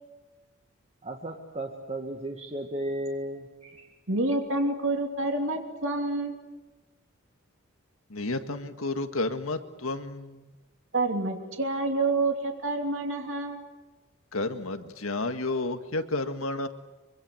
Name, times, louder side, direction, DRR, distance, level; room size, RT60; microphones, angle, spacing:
voice 1, 1.0-3.9, right 1 dB, 30° right, 1 dB, 1.9 m, -35 dB
voice 2, 4.1-6.4 10.9-13.6, right 2 dB, 60° right, 3 dB, 2.9 m, -28 dB
voice 3, 8.1-10.5 14.3-16.7, left 2 dB, 75° left, 7 dB, 1.9 m, -31 dB
25.5 x 24.5 x 8.0 m, 1.1 s
head